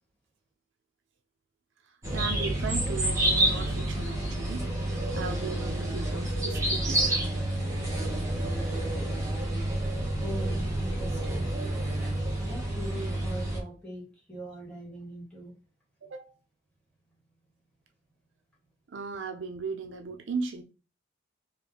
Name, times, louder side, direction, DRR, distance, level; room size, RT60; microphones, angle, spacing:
voice 1, 1.8-7.2 16.0-16.4 18.9-20.6, right 4 dB, 70° right, 0.5 m, -37 dB
sound 1, 2.0-13.6, right 1 dB, 15° right, 1.1 m, -29 dB
voice 2, 10.2-11.6 12.4-15.5, right 1 dB, 5° left, 1.6 m, -41 dB
3.2 x 2.5 x 3.8 m
head